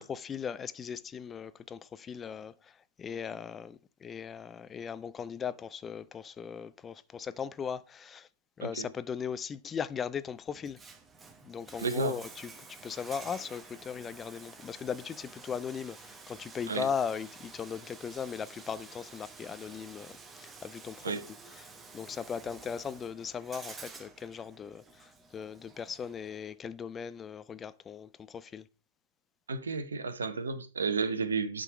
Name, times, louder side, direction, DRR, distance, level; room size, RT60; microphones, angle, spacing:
voice 1, 0.0-8.3 8.6-10.8 11.4-12.5 12.8-21.1 21.6-28.7, left 7 dB, 20° left, 0.3 m, -38 dB
Bathtub (filling or washing), 10.5-26.5, right 4 dB, 15° right, 0.9 m, -50 dB
voice 2, 11.8-12.2 16.7-16.9 21.0-21.2 29.5-31.6, right 4 dB, 80° right, 0.9 m, -32 dB
8.2 x 3.8 x 4.9 m
hypercardioid pair, 110°, 0 cm